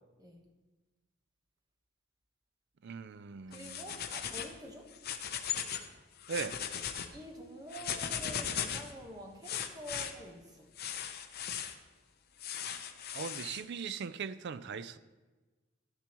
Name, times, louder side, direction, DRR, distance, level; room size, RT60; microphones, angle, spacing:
voice 1, 2.8-3.9 6.3-6.6 13.1-15.0, right 6 dB, 60° right, 0.4 m, -40 dB
sound 1, 3.5-4.5 4.9-5.9 6.2-7.1 7.7-8.9 9.4-10.1 10.8-11.7 12.4-13.6, left 9 dB, 50° left, 0.7 m, -38 dB
voice 2, 3.5-4.9 7.1-10.7, right 1 dB, 20° right, 1.2 m, -47 dB
11.0 x 10.5 x 3.0 m
head